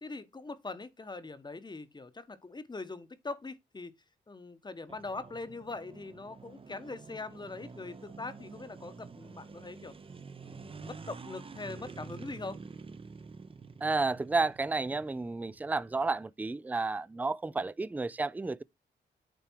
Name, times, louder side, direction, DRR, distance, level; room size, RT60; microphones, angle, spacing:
voice 1, 0.0-3.9 4.3-9.9 10.4-12.6 17.5-17.7, left 3 dB, 25° left, 1.0 m, -42 dB
sound 1, 4.9-16.2, right 4 dB, 30° right, 0.7 m, -48 dB
voice 2, 13.8-18.6, right 3 dB, 10° right, 0.4 m, -31 dB
9.1 x 3.4 x 4.5 m
cardioid pair, 85°, 18 cm